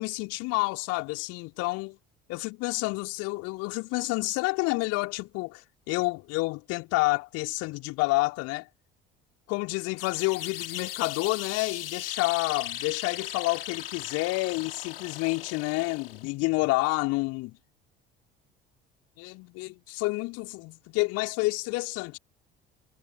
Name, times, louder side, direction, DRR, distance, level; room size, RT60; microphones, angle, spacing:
voice 1, 0.0-2.0 2.3-8.7 9.5-17.6 19.2-22.2, left 23 dB, 55° left, 4.0 m, -29 dB
sound 1, 10.0-16.3, left 11 dB, 75° left, 1.9 m, -38 dB
figure-of-eight pair, 60°, 29 cm